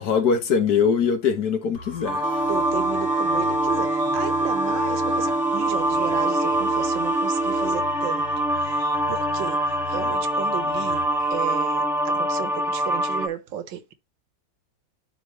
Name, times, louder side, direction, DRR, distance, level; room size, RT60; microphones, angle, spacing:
voice 1, 0.0-2.3, left 6 dB, 60° left, 1.6 m, -22 dB
sound 1, 1.7-11.3, left 5 dB, 75° left, 3.4 m, -41 dB
sound 2, 2.0-13.3, equal, ahead, 0.5 m, -24 dB
sound 3, 2.2-8.2, right 5 dB, 50° right, 1.8 m, -29 dB
voice 2, 2.5-8.2 8.5-11.0 11.3-13.9, right 10 dB, 90° right, 1.8 m, -34 dB
12.0 x 4.1 x 3.2 m
omnidirectional pair, 2.0 m